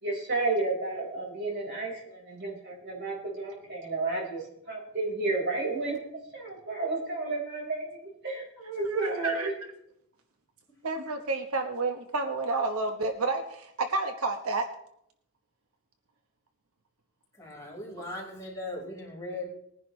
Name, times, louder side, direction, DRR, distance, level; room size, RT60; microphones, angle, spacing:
voice 1, 0.0-6.1 6.3-9.5, right 3 dB, 50° right, -2 dB, 4.7 m, -32 dB
voice 2, 8.8-9.5 10.8-14.7, right 3 dB, 75° right, 5 dB, 1.1 m, -30 dB
voice 3, 17.4-19.5, left 1 dB, 15° left, -4 dB, 4.7 m, -38 dB
20.5 x 10.5 x 3.2 m, 0.74 s
head